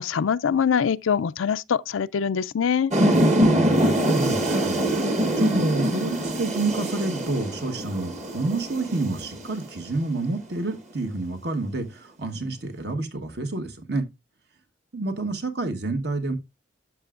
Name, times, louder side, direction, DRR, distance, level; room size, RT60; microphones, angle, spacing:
voice 1, 0.0-2.9, left 7 dB, 90° left, 0.4 m, -23 dB
sound 1, 2.9-9.9, right 1 dB, 35° right, 1.5 m, -23 dB
voice 2, 3.5-14.1 14.9-16.3, right 2 dB, 55° right, 1.2 m, -29 dB
12.0 x 6.1 x 2.4 m
head